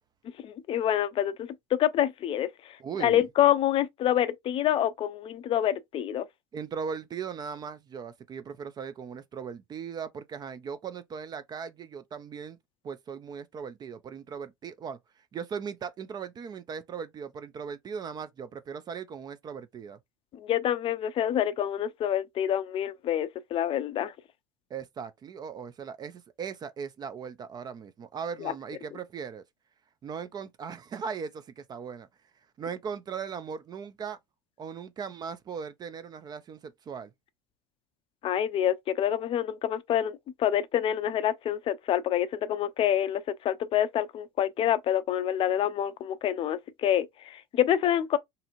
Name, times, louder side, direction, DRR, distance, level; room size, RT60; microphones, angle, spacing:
voice 1, 0.4-6.3 20.3-24.1 28.4-28.5 38.2-48.2, left 11 dB, 40° left, 0.4 m, -27 dB
voice 2, 2.8-3.3 6.5-12.6 12.8-20.0 24.7-29.4 30.0-32.1 32.6-34.2 34.6-37.1, right 6 dB, 30° right, 0.4 m, -38 dB
2.8 x 2.6 x 2.5 m
supercardioid pair, 100°, 15 cm